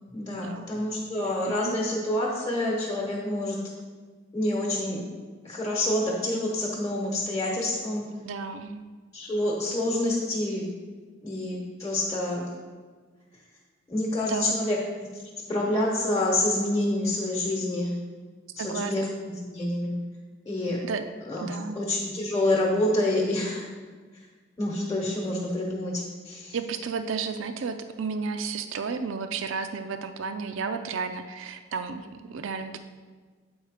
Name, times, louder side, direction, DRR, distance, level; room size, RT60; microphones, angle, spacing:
voice 1, 0.1-3.6 4.3-5.0 5.4-8.0 9.1-10.7 11.2-12.5 13.9-14.8 15.5-17.9 18.6-19.9 20.4-20.8 21.2-23.6 24.6-26.5, left 1 dB, 20° left, -3 dB, 1.0 m, -27 dB
voice 2, 8.2-8.8 14.2-14.5 18.6-18.9 20.8-21.0 21.4-21.8 26.5-32.8, right 5 dB, 70° right, 9 dB, 0.4 m, -32 dB
7.9 x 4.4 x 4.9 m, 1.5 s
head